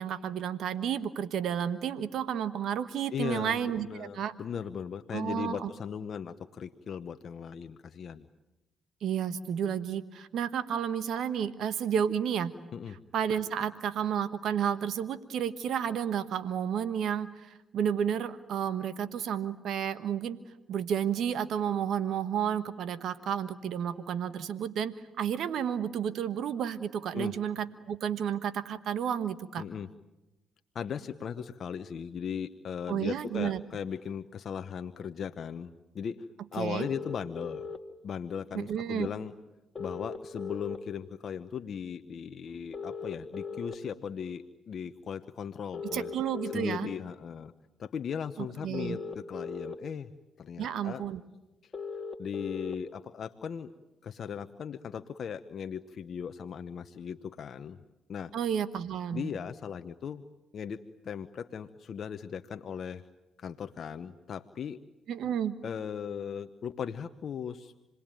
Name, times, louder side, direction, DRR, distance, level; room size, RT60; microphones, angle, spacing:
voice 1, 0.0-4.3 5.1-5.7 9.0-12.5 13.1-20.4 20.7-29.6 32.9-33.6 36.6-36.9 38.5-39.1 45.9-46.9 48.6-49.0 50.6-51.2 58.3-59.3 65.1-65.6, right 8 dB, 70° right, 13 dB, 1.2 m, -31 dB
voice 2, 3.1-8.3 12.7-13.0 27.1-27.3 29.6-29.9 30.7-36.3 36.5-37.7 38.0-39.3 39.8-46.1 46.5-47.5 47.8-50.1 50.4-51.0 51.6-51.7 52.2-53.7 54.0-57.8 58.1-58.3 59.1-60.2 60.5-63.0 63.4-64.8 65.6-67.7, left 7 dB, 55° left, 9 dB, 1.0 m, -38 dB
sound 1, 36.8-37.8 39.7-40.8 42.7-43.7 45.7-46.7 48.7-49.7 51.7-52.7, left 5 dB, 30° left, 2.1 m, -38 dB
28.5 x 21.0 x 9.1 m, 1.0 s
supercardioid pair, 60°, 0 cm